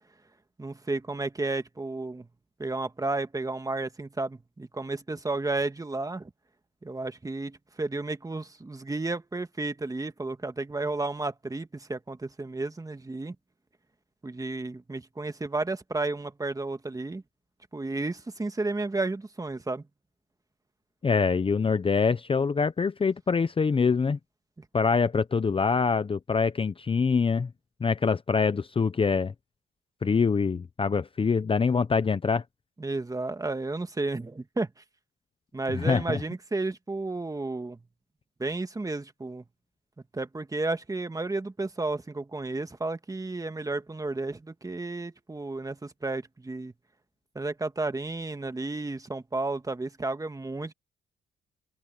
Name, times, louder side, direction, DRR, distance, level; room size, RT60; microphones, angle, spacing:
voice 1, 0.6-2.3 2.6-6.3 6.8-13.4 14.2-17.2 17.7-19.8 32.8-34.7 35.5-37.8 38.4-39.4 40.1-46.7 47.4-50.7, right 2 dB, 15° right, 1.7 m, -32 dB
voice 2, 21.0-24.2 24.7-27.5 27.8-29.3 30.0-32.4 35.8-36.2, left 5 dB, 25° left, 0.7 m, -25 dB
cardioid pair, 90°, 20 cm